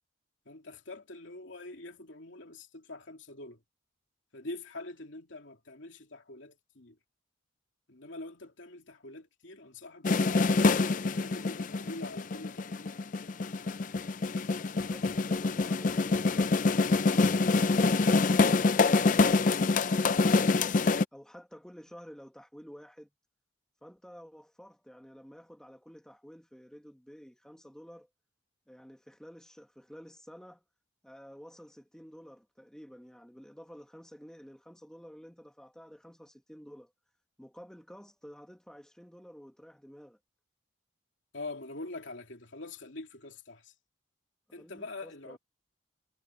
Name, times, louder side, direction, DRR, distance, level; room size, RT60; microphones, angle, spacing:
voice 1, 0.4-3.6 4.3-7.0 7.9-10.6 11.0-13.0 41.3-43.7 44.5-45.4, left 2 dB, 70° left, 2.8 m, -44 dB
sound 1, 10.0-21.0, left 3 dB, 40° left, 0.4 m, -25 dB
voice 2, 21.1-23.1 23.8-28.1 28.7-30.6 31.0-36.9 37.4-40.2 44.6-45.4, equal, 5° left, 1.8 m, -51 dB
head